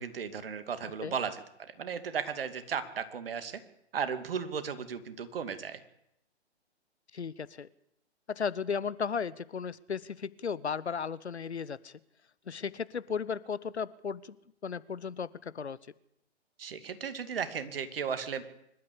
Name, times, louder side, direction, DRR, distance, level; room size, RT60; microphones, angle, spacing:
voice 1, 0.0-1.4 1.8-3.6 3.9-5.8 16.6-18.4, right 6 dB, 55° right, 10 dB, 2.5 m, -35 dB
voice 2, 7.1-7.7 8.3-12.0 12.5-14.4 14.6-15.8, left 6 dB, 75° left, 19 dB, 1.1 m, -35 dB
25.0 x 13.0 x 8.6 m, 0.77 s
figure-of-eight pair, 125°, 34 cm